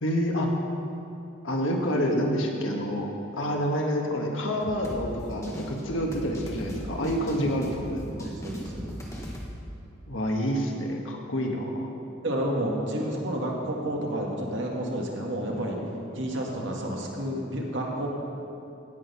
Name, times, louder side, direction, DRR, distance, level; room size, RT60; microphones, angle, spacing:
voice 1, 0.0-0.5 1.4-3.1 3.3-8.0 10.1-11.9, equal, 80° left, 0 dB, 1.7 m, -28 dB
sound 1, 4.6-9.5, equal, 15° left, 1.3 m, -38 dB
voice 2, 8.2-9.0 12.2-15.8 16.2-18.1, right 1 dB, 65° right, -1 dB, 1.9 m, -30 dB
16.5 x 6.6 x 5.7 m, 2.8 s
head